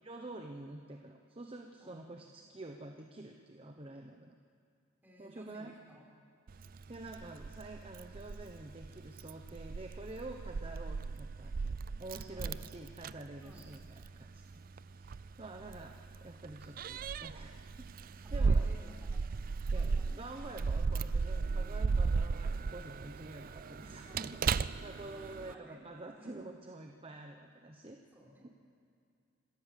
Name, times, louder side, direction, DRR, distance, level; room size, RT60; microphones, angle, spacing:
voice 1, 0.0-4.3 5.2-5.8 6.9-14.4 14.9-17.9 18.3-18.7 19.7-24.4 24.8-28.0, right 2 dB, 30° right, 3 dB, 0.9 m, -48 dB
voice 2, 1.8-2.3 5.0-6.1 12.3-12.7 13.4-13.7 18.2-19.4 19.7-20.0 23.8-24.5 25.2-25.8 26.2-26.5 28.1-28.5, equal, 10° right, -2 dB, 3.8 m, -57 dB
Keys jangling, 6.5-25.5, right 4 dB, 45° right, 0.4 m, -36 dB
26.5 x 13.5 x 7.5 m, 2.4 s
head